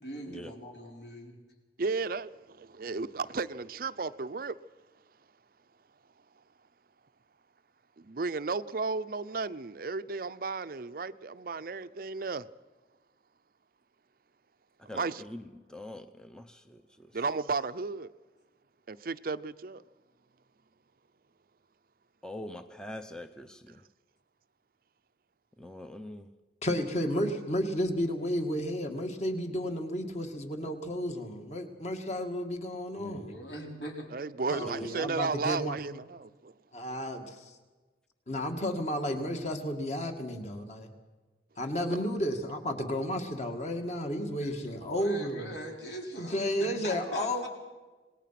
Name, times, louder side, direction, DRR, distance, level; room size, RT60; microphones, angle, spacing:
voice 1, 0.0-1.4 32.9-34.1 44.4-47.5, equal, 70° left, 4.9 m, -42 dB
voice 2, 1.8-2.3 2.6-4.5 8.0-12.5 14.9-15.2 17.1-18.1 18.9-19.8 34.1-36.5 41.9-42.0, right 4 dB, 50° right, 0.6 m, -34 dB
voice 3, 14.9-17.1 22.2-23.8 25.6-26.3, left 1 dB, 5° left, 0.7 m, -44 dB
voice 4, 26.6-33.3 34.5-35.8 36.7-37.5 38.3-40.9 41.6-45.5 46.2-47.5, equal, 40° left, 2.2 m, -32 dB
27.0 x 19.5 x 5.9 m
head